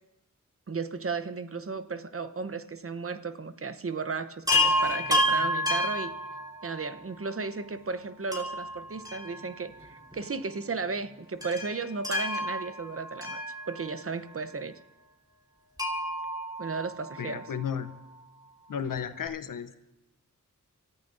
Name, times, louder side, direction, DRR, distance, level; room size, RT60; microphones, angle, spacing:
voice 1, 0.7-6.1 6.6-13.4 13.7-14.8 16.6-17.5, right 4 dB, 45° right, 12 dB, 0.8 m, -35 dB
Chime, 4.5-6.9 8.3-9.8 10.1-10.2 11.4-14.1 15.8-17.4 19.0-19.1 19.3-19.4, left 1 dB, 10° right, 3.3 m, -29 dB
voice 2, 17.2-17.9 18.7-19.8, left 7 dB, 80° left, 12 dB, 0.8 m, -34 dB
28.0 x 14.5 x 2.6 m, 0.95 s
cardioid pair, 50°, 32 cm